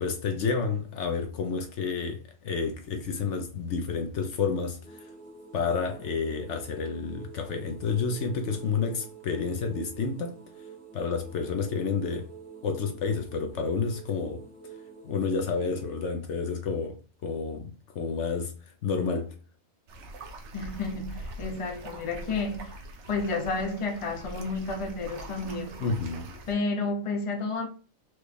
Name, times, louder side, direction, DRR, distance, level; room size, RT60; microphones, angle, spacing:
voice 1, 0.0-5.1 5.5-10.4 10.9-12.3 12.6-14.4 15.0-18.5 18.8-19.4 25.8-26.3, left 5 dB, 65° left, 0.9 m, -30 dB
sound 1, 4.8-16.1, right 5 dB, 5° left, 1.0 m, -47 dB
sound 2, 19.9-26.5, right 1 dB, 65° right, 1.0 m, -42 dB
voice 2, 20.5-22.8 23.1-25.9 26.5-27.7, left 3 dB, 30° left, 0.7 m, -31 dB
4.6 x 3.1 x 3.3 m
omnidirectional pair, 1.4 m